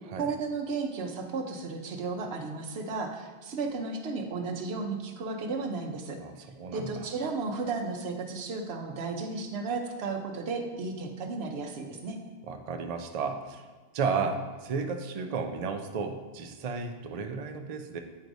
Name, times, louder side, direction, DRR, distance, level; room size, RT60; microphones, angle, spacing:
voice 1, 0.2-6.2 6.7-12.2, right 4 dB, 70° right, 4 dB, 0.9 m, -34 dB
voice 2, 6.2-7.1 12.4-13.6 13.9-18.0, right 5 dB, 50° right, 5 dB, 0.4 m, -33 dB
8.3 x 4.6 x 2.6 m, 1.3 s
omnidirectional pair, 1.1 m